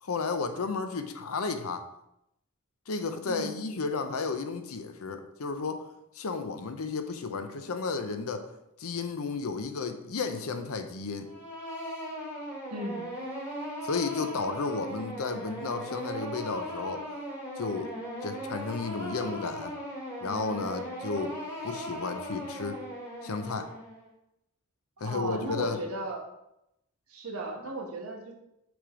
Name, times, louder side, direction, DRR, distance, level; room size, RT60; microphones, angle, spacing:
voice 1, 0.0-1.8 2.9-5.9 6.1-8.4 8.8-11.3 13.8-17.0 17.6-17.9 18.2-19.7 20.2-21.3 21.6-22.8 23.2-23.7 25.0-25.8, left 4 dB, 75° left, 8 dB, 0.7 m, -33 dB
voice 2, 3.2-3.6 12.7-13.1 25.0-26.3 27.1-28.3, right 2 dB, 80° right, 2 dB, 1.2 m, -36 dB
sound 1, 11.2-24.1, equal, 10° left, 1.6 m, -38 dB
6.2 x 3.4 x 4.8 m, 0.84 s
head